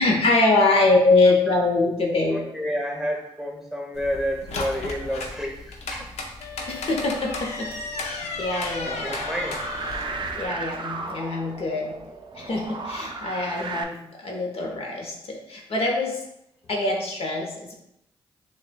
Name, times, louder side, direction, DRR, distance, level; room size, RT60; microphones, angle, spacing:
voice 1, 0.0-2.4 6.7-7.7 8.0-9.3 10.1-11.9 12.3-16.2 16.7-17.7, left 2 dB, 60° left, -1 dB, 0.9 m, -23 dB
voice 2, 2.3-6.1 8.8-9.6, equal, 5° right, 1 dB, 1.0 m, -30 dB
sound 1, 3.9-10.5, left 2 dB, 85° left, 0.5 m, -34 dB
sound 2, 6.4-10.5, left 6 dB, 35° left, 0.5 m, -41 dB
sound 3, 8.8-13.8, right 4 dB, 45° right, 0.5 m, -35 dB
6.5 x 2.2 x 2.2 m, 0.79 s
cardioid pair, 55°, 11 cm